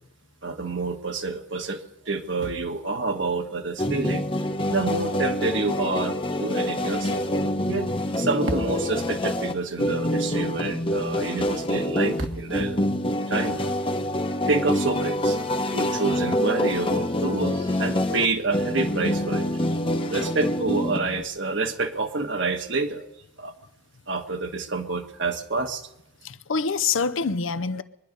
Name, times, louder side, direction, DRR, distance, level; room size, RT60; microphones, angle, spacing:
voice 1, 0.4-4.3 4.7-7.2 7.7-7.9 8.2-12.8 13.3-13.6 14.5-15.4 15.7-19.5 20.1-23.0 23.4-23.5 24.1-25.8, right 3 dB, 65° right, 1.4 m, -28 dB
sound 1, 3.8-21.2, left 1 dB, 25° left, 0.8 m, -26 dB
voice 2, 26.2-27.8, left 5 dB, 80° left, 0.7 m, -26 dB
24.0 x 11.0 x 5.3 m
head